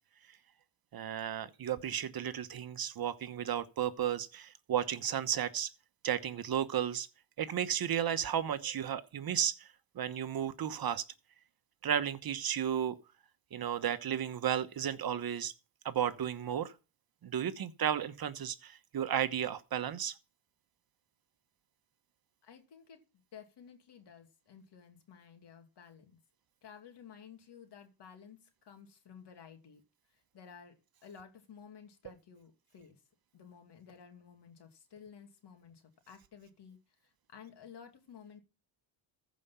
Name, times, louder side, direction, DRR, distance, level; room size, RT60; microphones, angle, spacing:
voice 1, 0.9-5.7 6.0-7.1 7.4-9.7 9.9-11.0 11.8-13.0 13.5-15.5 15.8-16.7 17.2-20.1, right 9 dB, 50° right, 1.2 m, -33 dB
voice 2, 22.4-23.0 23.3-26.2 26.6-29.8 30.1-30.7 31.0-33.0 33.3-38.4, left 7 dB, 60° left, 2.7 m, -54 dB
14.5 x 5.2 x 5.8 m
supercardioid pair, 70°, 47 cm